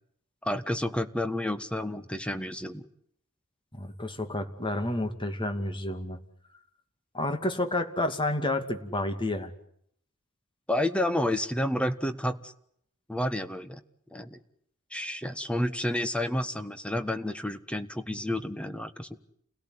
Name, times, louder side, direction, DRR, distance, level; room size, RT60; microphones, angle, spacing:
voice 1, 0.4-2.8 10.7-12.5 13.1-13.8 14.1-14.4 14.9-19.2, left 1 dB, 5° left, 10 dB, 1.4 m, -30 dB
voice 2, 3.7-6.2 7.1-9.5, left 1 dB, 25° left, 6 dB, 2.6 m, -30 dB
29.5 x 17.5 x 9.7 m, 0.70 s
head